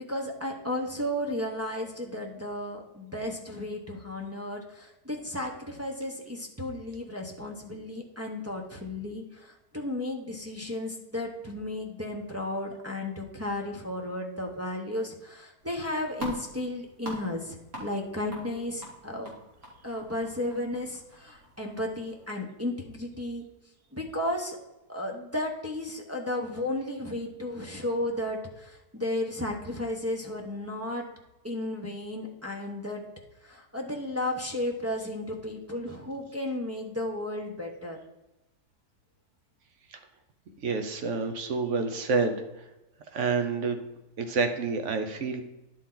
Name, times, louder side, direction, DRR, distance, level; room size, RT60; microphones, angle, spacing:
voice 1, 0.1-19.3 19.8-23.4 23.9-24.6 24.9-31.0 31.4-33.0 33.4-38.0, left 1 dB, 20° right, -1 dB, 0.4 m, -34 dB
sound 1, 15.6-22.3, equal, 40° right, 2.2 m, -45 dB
voice 2, 40.6-42.4 43.1-43.8 44.2-45.4, right 4 dB, 55° right, 6 dB, 1.0 m, -28 dB
10.5 x 4.3 x 3.8 m, 0.97 s
omnidirectional pair, 1.7 m